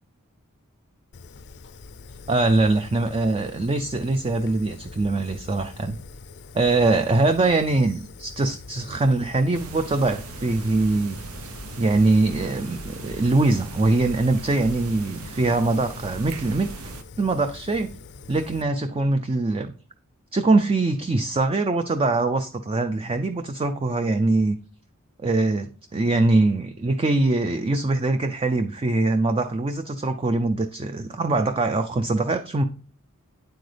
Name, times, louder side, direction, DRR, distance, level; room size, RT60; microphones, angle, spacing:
Fire, 1.1-18.6, left 4 dB, 50° left, 0.5 m, -44 dB
voice 1, 2.3-6.0 6.5-11.2 11.8-16.7 17.2-17.9 18.3-19.7 20.3-24.6 25.2-32.6, right 2 dB, 25° right, 8 dB, 0.4 m, -22 dB
sound 1, 9.5-17.0, right 3 dB, 80° right, 0.8 m, -39 dB
9.4 x 7.9 x 3.3 m, 0.42 s
head